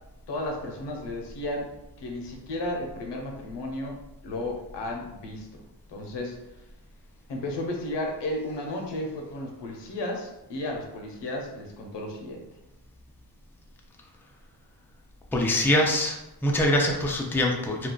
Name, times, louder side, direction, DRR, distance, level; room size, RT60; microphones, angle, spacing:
voice 1, 0.3-1.7 2.0-4.0 4.2-5.6 5.9-6.4 7.3-12.4, left 1 dB, 90° left, 1 dB, 0.7 m, -33 dB
voice 2, 15.3-16.2 16.4-17.9, left 1 dB, 5° left, 0 dB, 0.4 m, -23 dB
2.4 x 2.3 x 3.7 m, 0.92 s
wide cardioid pair, 100°, 41 cm